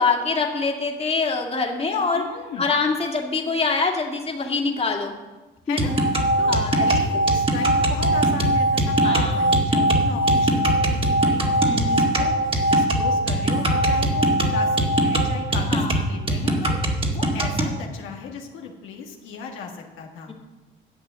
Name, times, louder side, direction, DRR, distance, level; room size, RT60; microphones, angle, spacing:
voice 1, 0.0-2.2 2.6-5.2 5.7-5.9 6.5-6.9 9.0-9.4 11.6-12.0 15.7-16.0 20.3-20.4, left 4 dB, 30° left, 1 dB, 2.2 m, -24 dB
voice 2, 2.2-2.7 5.7-5.9 6.4-16.8 17.1-20.3, left 6 dB, 90° left, 0 dB, 1.7 m, -36 dB
sound 1, 5.8-17.8, right 1 dB, 30° right, 2.1 m, -23 dB
sound 2, 5.8-16.0, right 1 dB, 45° right, 1.3 m, -23 dB
10.5 x 8.0 x 7.6 m, 1.2 s
cardioid pair, 90°, 20 cm